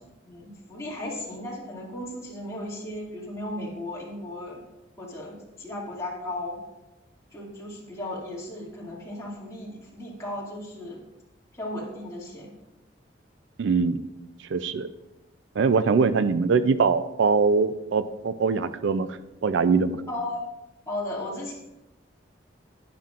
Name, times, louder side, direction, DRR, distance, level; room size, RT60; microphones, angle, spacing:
voice 1, 0.2-4.6 5.0-6.6 7.3-11.0 11.6-12.5 20.1-20.4 20.9-21.5, left 1 dB, 15° left, -5 dB, 2.3 m, -35 dB
voice 2, 13.6-14.0 14.5-14.9 15.6-20.0, right 5 dB, 75° right, 13 dB, 0.4 m, -23 dB
11.0 x 10.5 x 2.5 m, 0.99 s
head